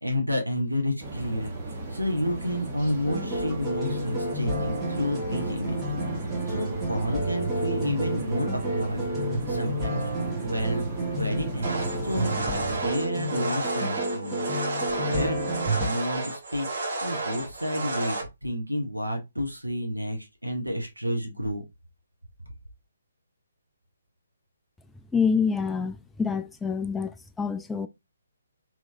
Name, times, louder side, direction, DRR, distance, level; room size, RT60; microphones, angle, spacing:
voice 1, 0.0-5.9 6.5-9.2 9.5-10.1 10.4-10.9 11.2-12.3 12.7-14.6 15.0-15.4 15.8-16.7 17.0-18.2 18.4-21.6, equal, 85° right, 1.0 m, -30 dB
sound 1, 1.0-12.8, right 2 dB, 30° right, 1.2 m, -34 dB
sound 2, 3.0-15.9, right 1 dB, 10° right, 1.2 m, -31 dB
sound 3, 11.6-18.2, right 2 dB, 55° right, 1.3 m, -32 dB
voice 2, 25.1-27.9, left 5 dB, 5° left, 0.3 m, -27 dB
3.6 x 2.9 x 2.6 m
figure-of-eight pair, 135°, 0 cm